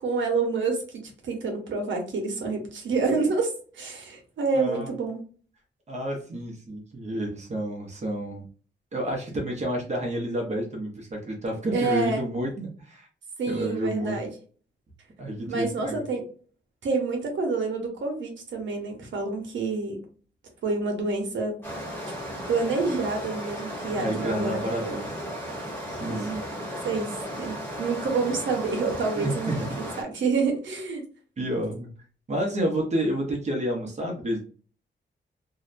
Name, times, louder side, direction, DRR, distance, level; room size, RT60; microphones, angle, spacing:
voice 1, 0.0-5.2 11.7-12.3 13.4-14.3 15.4-16.3 16.8-20.0 20.6-21.6 22.5-25.0 26.0-26.4 26.8-29.6 30.0-31.0, right 4 dB, 90° right, 2 dB, 0.9 m, -28 dB
voice 2, 4.5-4.9 5.9-8.4 8.9-13.1 13.5-14.2 15.2-16.0 23.9-25.1 25.9-26.4 26.7-26.8 29.1-29.8 31.4-31.9 32.3-34.4, right 1 dB, 35° right, 0 dB, 0.7 m, -30 dB
sound 1, 21.6-30.0, equal, 10° left, 1.0 m, -35 dB
2.7 x 2.1 x 2.5 m, 0.41 s
wide cardioid pair, 155°, 19 cm